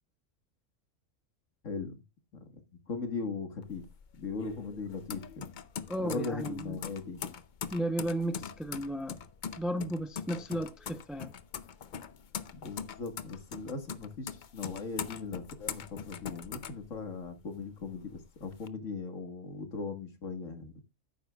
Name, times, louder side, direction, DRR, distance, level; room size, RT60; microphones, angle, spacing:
voice 1, 1.6-2.0 2.9-3.8 4.2-5.4 6.0-7.2 12.5-20.7, left 4 dB, 75° left, 2.0 m, -38 dB
sound 1, 3.6-17.4 17.8-18.7, left 7 dB, 50° left, 0.6 m, -42 dB
voice 2, 5.9-6.8 7.7-9.2 9.6-11.3, right 1 dB, ahead, 0.3 m, -34 dB
11.5 x 9.2 x 2.3 m
omnidirectional pair, 1.3 m